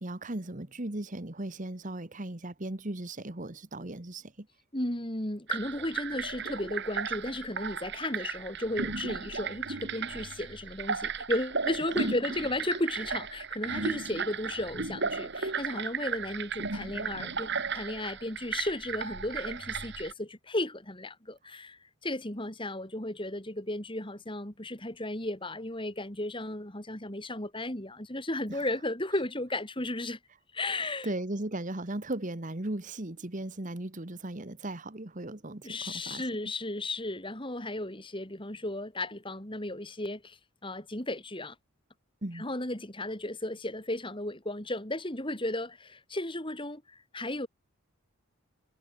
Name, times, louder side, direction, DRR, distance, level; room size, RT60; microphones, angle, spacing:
voice 1, 0.0-4.5 12.1-12.2 28.5-28.7 30.8-36.2 42.2-42.4, right 1 dB, 35° right, 1.4 m, -37 dB
voice 2, 4.7-30.2 30.5-31.1 35.6-41.5 42.3-47.5, left 1 dB, 25° left, 3.3 m, -34 dB
sound 1, 5.5-20.1, right 5 dB, 55° right, 2.4 m, -35 dB
head